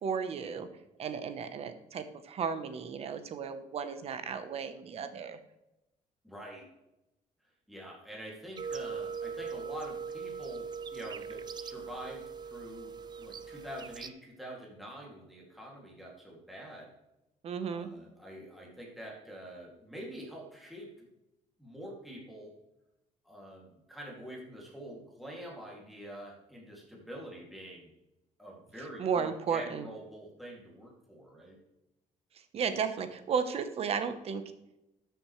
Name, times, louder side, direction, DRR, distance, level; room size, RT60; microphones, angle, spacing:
voice 1, 0.0-0.7 1.0-5.4 17.4-17.9 29.0-29.9 32.3-34.4, right 6 dB, 50° right, 10 dB, 0.9 m, -34 dB
voice 2, 6.2-6.7 7.7-12.9 13.2-16.9 17.7-21.0 21.6-22.5 23.2-27.9 28.4-31.6, equal, ahead, -3 dB, 2.4 m, -46 dB
sound 1, 8.6-14.1, right 6 dB, 30° right, 0.5 m, -40 dB
13.0 x 7.0 x 3.2 m, 0.93 s
cardioid pair, 130°, 13 cm